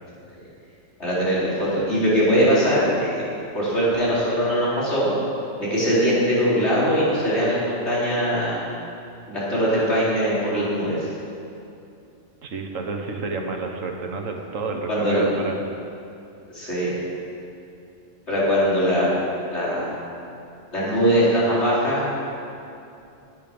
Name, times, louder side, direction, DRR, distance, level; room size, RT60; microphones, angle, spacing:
voice 1, 1.0-3.3 3.5-5.1 5.6-8.6 9.3-11.1 14.9-15.2 16.5-16.9 18.3-19.1 19.5-19.9 20.7-22.1, equal, 60° left, -8 dB, 4.4 m, -21 dB
voice 2, 12.4-15.6, right 3 dB, 80° right, 3 dB, 1.6 m, -30 dB
17.0 x 9.1 x 5.3 m, 2.7 s
omnidirectional pair, 1.3 m